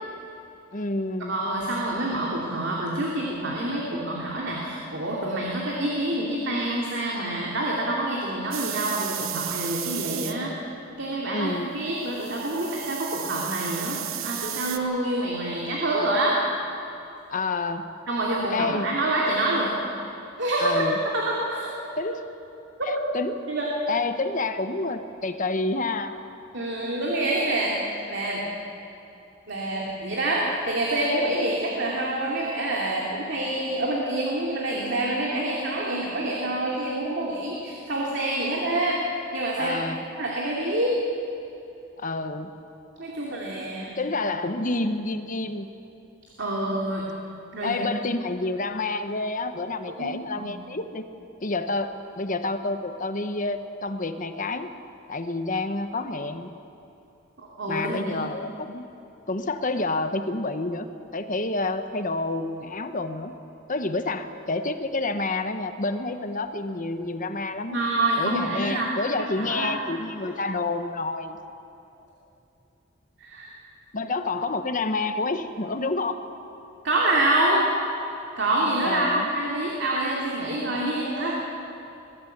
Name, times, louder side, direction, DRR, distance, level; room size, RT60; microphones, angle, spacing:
voice 1, 0.7-1.4 11.3-11.9 17.3-17.9 18.5-18.9 20.6-21.0 22.0-22.3 22.9-23.4 23.9-26.1 39.6-40.0 42.0-42.5 44.0-45.7 47.6-51.1 51.4-54.7 55.1-56.5 57.7-58.9 59.3-60.9 61.1-63.3 63.7-67.8 68.2-71.4 73.9-76.2 78.8-79.3, left 2 dB, 40° left, 9 dB, 1.1 m, -29 dB
voice 2, 1.3-10.5 11.0-16.4 18.1-19.7 20.4-20.8 21.1-21.7 23.5-23.7 26.5-28.4 29.5-39.0 39.3-39.8 40.1-40.9 43.0-44.0 46.4-47.1 47.5-47.8 50.0-50.5 57.4-58.2 67.7-69.0 69.4-69.8 70.2-70.3 73.2-73.5 76.8-77.7 78.4-81.3, right 1 dB, 60° right, -3 dB, 2.7 m, -27 dB
sound 1, 8.5-10.3 12.1-14.8, right 12 dB, 80° right, 1.1 m, -33 dB
22.5 x 14.5 x 8.1 m, 2.8 s
head